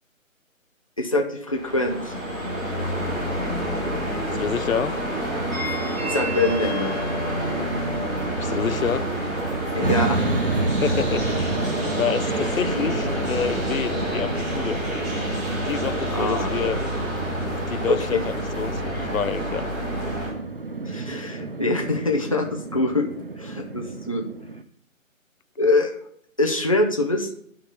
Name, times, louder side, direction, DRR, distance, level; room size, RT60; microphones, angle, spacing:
voice 1, 1.0-2.1 6.0-6.9 9.7-10.2 16.1-16.5 17.9-18.2 20.8-23.1 23.4-24.2 25.6-25.9 26.4-27.4, left 2 dB, 25° left, 0.6 m, -24 dB
sound 1, 1.5-20.3, right 1 dB, 15° right, 2.2 m, -27 dB
voice 2, 4.4-5.0 8.4-9.1 10.7-11.6 11.9-14.8 15.6-16.8 17.7-19.7, left 7 dB, 80° left, 0.7 m, -28 dB
sound 2, 9.8-24.6, right 3 dB, 45° right, 0.5 m, -31 dB
9.4 x 3.8 x 6.7 m
figure-of-eight pair, 170°, 41 cm